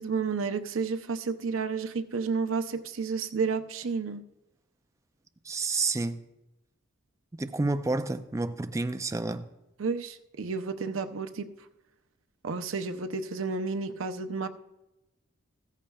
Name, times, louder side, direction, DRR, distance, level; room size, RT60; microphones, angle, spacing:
voice 1, 0.0-4.2 9.8-11.5 12.4-14.5, right 5 dB, 75° right, 0.6 m, -31 dB
voice 2, 5.4-6.2 7.3-9.5, right 3 dB, 15° right, 0.4 m, -30 dB
14.5 x 14.0 x 2.3 m
head